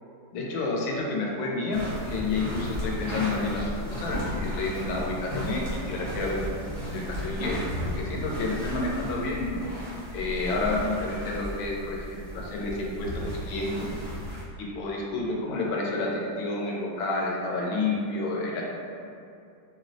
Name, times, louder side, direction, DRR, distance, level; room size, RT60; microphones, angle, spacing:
voice 1, 0.3-9.6 10.1-13.9 14.6-18.6, left 2 dB, 90° left, -2 dB, 1.4 m, -30 dB
sound 1, 1.7-14.4, equal, 50° right, 0.4 m, -35 dB
4.5 x 2.0 x 2.5 m, 2.5 s
omnidirectional pair, 2.1 m